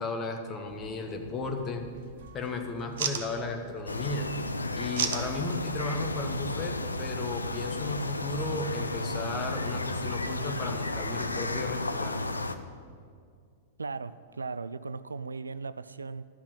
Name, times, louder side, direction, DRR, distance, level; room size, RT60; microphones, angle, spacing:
voice 1, 0.0-1.8 2.3-4.3 4.8-12.2, left 3 dB, 25° left, 4 dB, 1.3 m, -35 dB
sound 1, 0.7-8.0, right 7 dB, 55° right, 0.8 m, -40 dB
sound 2, 3.9-12.6, left 2 dB, 80° left, 0.5 m, -33 dB
voice 2, 13.8-16.2, right 4 dB, 75° right, 15 dB, 0.3 m, -37 dB
12.5 x 5.9 x 8.0 m, 2.2 s
figure-of-eight pair, 100°, 0 cm